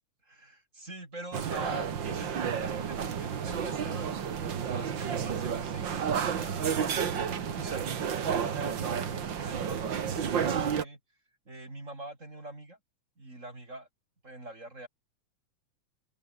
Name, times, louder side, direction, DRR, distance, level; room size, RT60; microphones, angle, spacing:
voice 1, 0.2-11.0 11.5-12.8 13.2-13.9 14.2-14.9, right 2 dB, 25° right, 5.2 m, -44 dB
sound 1, 1.3-10.8, right 7 dB, 45° right, 2.0 m, -31 dB
open air
omnidirectional pair, 3.4 m